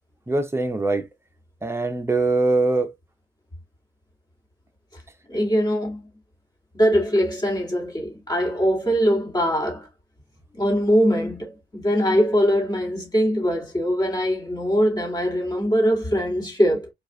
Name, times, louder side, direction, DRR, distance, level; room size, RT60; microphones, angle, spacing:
voice 1, 0.3-1.1 1.6-2.9, right 2 dB, 10° right, 0.7 m, -22 dB
voice 2, 5.3-6.0 6.7-9.9 10.5-16.9, equal, 20° left, 1.9 m, -22 dB
4.6 x 2.4 x 2.7 m
wide cardioid pair, 120°, 20 cm